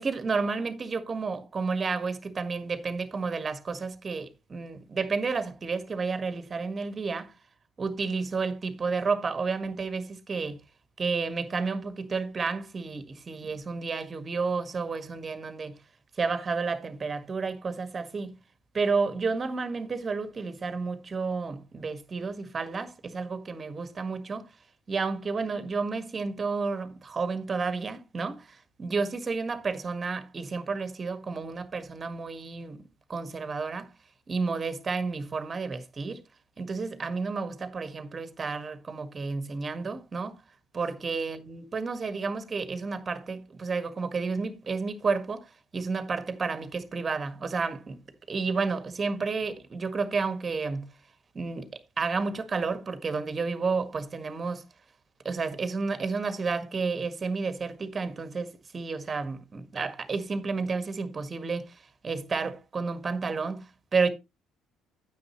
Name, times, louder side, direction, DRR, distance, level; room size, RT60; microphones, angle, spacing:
voice 1, 0.0-7.3 7.8-10.6 11.0-15.8 16.2-18.3 18.7-24.5 24.9-32.8 33.1-33.9 34.3-36.2 36.6-40.4 40.7-48.0 48.3-50.8 51.3-51.7 52.0-54.6 55.2-61.8 62.0-64.1, right 4 dB, 35° right, 1.7 m, -31 dB
9.7 x 8.6 x 3.1 m
hypercardioid pair, 55°, 0 cm